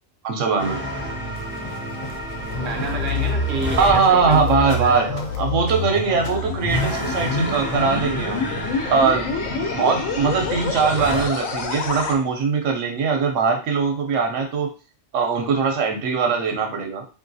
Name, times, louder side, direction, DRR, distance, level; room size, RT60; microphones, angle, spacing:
voice 1, 0.2-0.8 3.8-5.1 5.4-8.5 8.9-14.7 15.1-17.0, right 5 dB, 75° right, 3 dB, 0.9 m, -21 dB
sound 1, 0.6-4.0 6.7-11.3, equal, 15° right, 0.5 m, -30 dB
sound 2, 1.3-5.4 5.7-6.6, left 2 dB, 60° left, 0.7 m, -41 dB
sound 3, 2.1-12.2, left 4 dB, 85° left, 1.0 m, -27 dB
voice 2, 2.6-5.4, right 2 dB, 50° right, 3 dB, 0.7 m, -30 dB
2.9 x 2.5 x 2.6 m, 0.36 s
omnidirectional pair, 1.3 m